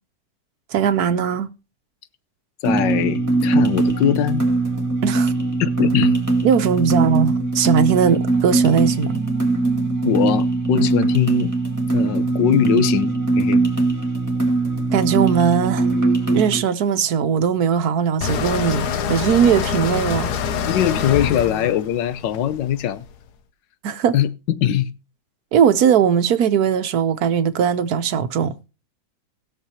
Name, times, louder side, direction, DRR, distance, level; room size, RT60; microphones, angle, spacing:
voice 1, 0.7-1.5 5.0-5.3 6.4-9.1 14.9-15.9 16.3-20.4 23.8-24.1 25.5-28.6, right 7 dB, 65° right, 1.3 m, -19 dB
voice 2, 2.6-4.5 5.6-6.1 10.0-11.5 11.9-13.6 20.7-23.0 24.1-24.9, left 10 dB, 85° left, 1.5 m, -21 dB
sound 1, 2.6-16.6, right 3 dB, 10° right, 1.7 m, -21 dB
sound 2, 18.2-23.2, left 7 dB, 65° left, 1.3 m, -25 dB
19.5 x 6.7 x 2.8 m
omnidirectional pair, 1.9 m